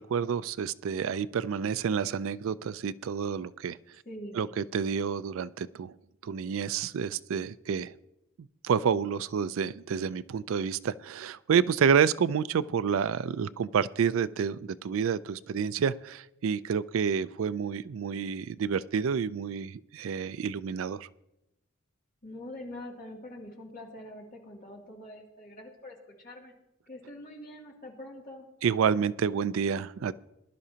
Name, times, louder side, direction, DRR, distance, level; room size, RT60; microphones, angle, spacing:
voice 1, 0.0-3.8 4.4-5.9 6.2-7.9 8.6-21.1 28.6-30.1, right 7 dB, 65° right, 16 dB, 0.4 m, -29 dB
voice 2, 4.0-4.4 22.2-26.5 26.9-28.5, left 1 dB, 40° left, -2 dB, 2.6 m, -44 dB
20.5 x 11.5 x 2.8 m, 0.89 s
head